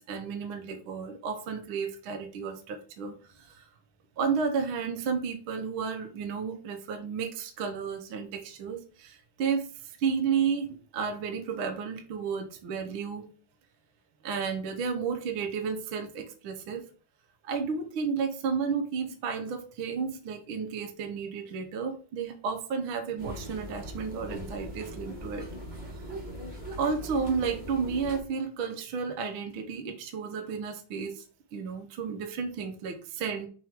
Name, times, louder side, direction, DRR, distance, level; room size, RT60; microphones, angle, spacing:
voice 1, 0.0-3.6 4.2-13.3 14.2-16.8 17.4-25.5 26.8-31.2 31.5-33.5, right 6 dB, 60° right, 5 dB, 1.4 m, -32 dB
sound 1, 23.2-28.2, equal, 20° right, 1.2 m, -40 dB
5.9 x 5.5 x 3.6 m, 0.39 s
omnidirectional pair, 3.5 m